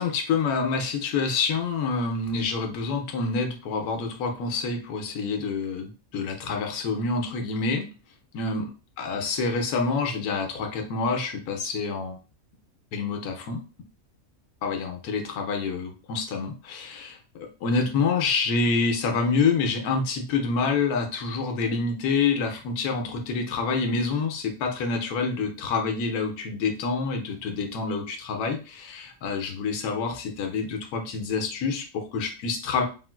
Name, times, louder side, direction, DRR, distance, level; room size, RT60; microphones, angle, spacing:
voice 1, 0.0-7.9 8.3-8.6 9.0-12.2 12.9-13.6 14.6-32.9, left 4 dB, 85° left, 4 dB, 1.2 m, -27 dB
3.6 x 2.4 x 2.2 m, 0.34 s
omnidirectional pair, 1.6 m